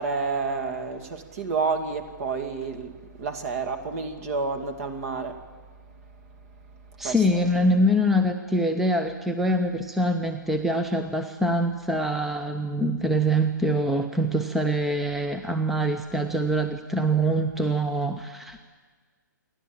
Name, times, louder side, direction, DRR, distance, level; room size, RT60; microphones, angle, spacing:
voice 1, 0.0-5.4 7.0-7.6, right 4 dB, 45° right, 7 dB, 2.3 m, -30 dB
voice 2, 7.0-18.6, right 1 dB, ahead, 7 dB, 0.7 m, -24 dB
28.5 x 11.5 x 8.9 m, 1.5 s
hypercardioid pair, 140°, 11 cm